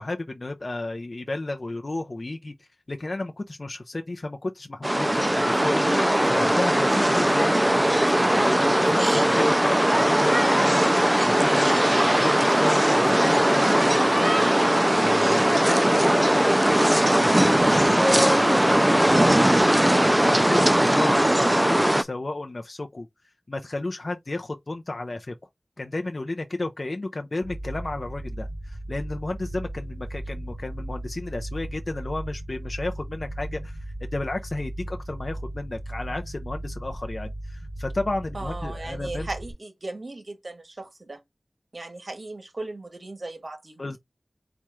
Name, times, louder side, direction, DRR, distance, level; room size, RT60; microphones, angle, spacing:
voice 1, 0.0-7.6 8.3-16.6 17.6-19.7 20.2-23.1 23.5-25.3 25.8-33.8 34.1-39.3 43.8-44.0, left 2 dB, 60° left, 0.5 m, -33 dB
sound 1, 4.8-22.0, right 1 dB, 15° right, 0.4 m, -20 dB
sound 2, 27.4-39.5, right 1 dB, 45° right, 1.1 m, -36 dB
voice 2, 38.3-41.2 41.7-44.0, right 2 dB, 65° right, 1.4 m, -37 dB
4.3 x 2.4 x 4.7 m
wide cardioid pair, 60°, 0 cm